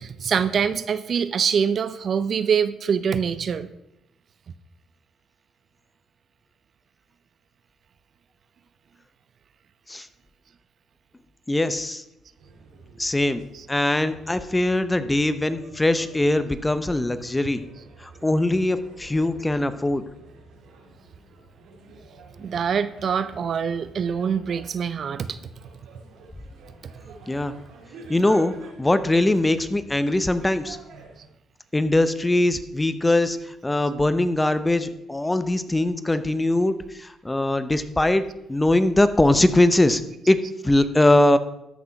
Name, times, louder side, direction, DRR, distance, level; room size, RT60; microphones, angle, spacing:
voice 1, 0.0-3.7 13.5-13.7 22.4-25.4 40.4-40.5, right 7 dB, 55° right, 14 dB, 0.6 m, -24 dB
voice 2, 11.5-12.0 13.0-17.7 18.0-20.1 27.3-27.6 28.1-30.8 31.7-41.4, left 1 dB, 15° left, 13 dB, 0.8 m, -21 dB
sound 1, 12.4-31.3, right 3 dB, 80° right, 2.5 m, -48 dB
13.5 x 6.4 x 5.8 m, 0.86 s
cardioid pair, 90°, 0 cm